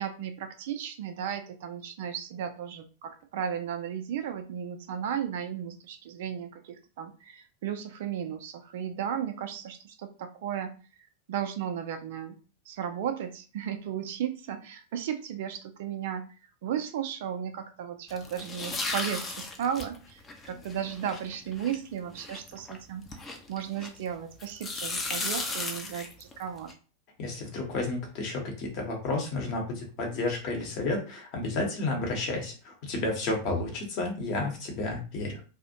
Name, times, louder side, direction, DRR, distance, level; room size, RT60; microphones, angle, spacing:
voice 1, 0.0-10.7 11.3-12.4 12.7-16.2 16.6-23.1 23.5-26.7, right 9 dB, 55° right, 7 dB, 0.3 m, -35 dB
sound 1, 18.1-24.1 24.4-26.7, left 3 dB, 20° left, 0.4 m, -36 dB
voice 2, 27.2-35.4, left 2 dB, 40° left, 1 dB, 0.8 m, -31 dB
2.4 x 2.0 x 2.7 m, 0.36 s
figure-of-eight pair, 90°, 0 cm